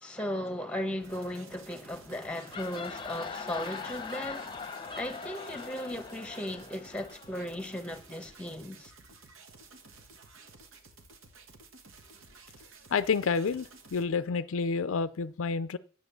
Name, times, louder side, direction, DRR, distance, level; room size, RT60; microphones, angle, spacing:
voice 1, 0.0-4.5 5.0-8.9, left 1 dB, 5° left, 1.2 m, -36 dB
sound 1, 1.0-14.1, right 3 dB, 70° right, 1.4 m, -54 dB
sound 2, 2.2-7.8, left 5 dB, 25° left, 0.9 m, -41 dB
voice 2, 12.9-15.8, left 5 dB, 70° left, 0.5 m, -29 dB
9.5 x 7.9 x 6.8 m
head